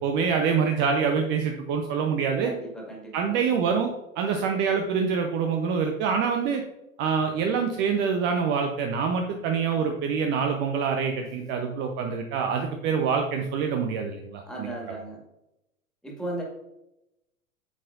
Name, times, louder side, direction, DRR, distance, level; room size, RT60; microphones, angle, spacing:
voice 1, 0.0-2.5 3.1-6.6 7.0-15.0, right 6 dB, 25° right, 3 dB, 0.7 m, -26 dB
voice 2, 2.4-3.4 11.2-11.5 14.5-15.2 16.0-16.4, right 2 dB, ahead, -2 dB, 2.1 m, -36 dB
8.4 x 7.6 x 2.6 m, 0.88 s
figure-of-eight pair, 100°, 41 cm